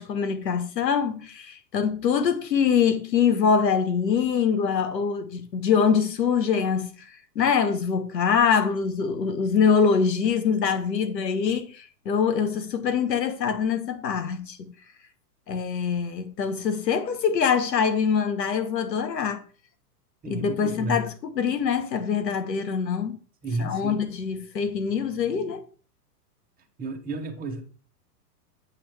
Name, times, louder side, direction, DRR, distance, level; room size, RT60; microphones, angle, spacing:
voice 1, 0.0-14.7 15.5-19.4 20.3-23.2 23.6-25.7, left 6 dB, 90° left, 1.5 m, -24 dB
voice 2, 20.2-21.1 23.4-24.0 26.8-27.6, right 2 dB, 20° right, 1.3 m, -32 dB
7.9 x 7.2 x 3.6 m
hypercardioid pair, 130°, 48 cm